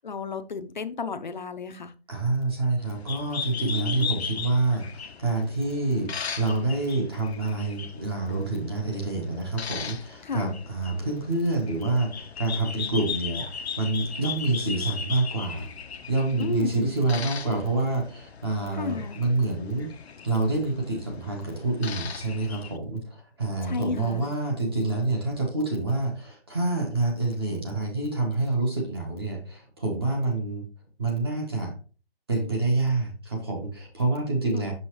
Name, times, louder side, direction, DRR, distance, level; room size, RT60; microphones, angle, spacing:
voice 1, 0.0-1.9 3.6-4.1 10.2-10.6 16.4-16.8 18.7-19.2 23.6-24.3 34.5-34.7, left 5 dB, 50° left, 0.6 m, -33 dB
voice 2, 2.1-15.7 16.1-19.9 20.2-30.7 31.0-31.7 32.3-34.7, right 2 dB, 25° right, 1.1 m, -27 dB
sound 1, 2.8-22.8, left 6 dB, 85° left, 0.7 m, -38 dB
6.0 x 5.5 x 3.0 m
hypercardioid pair, 175°, 31 cm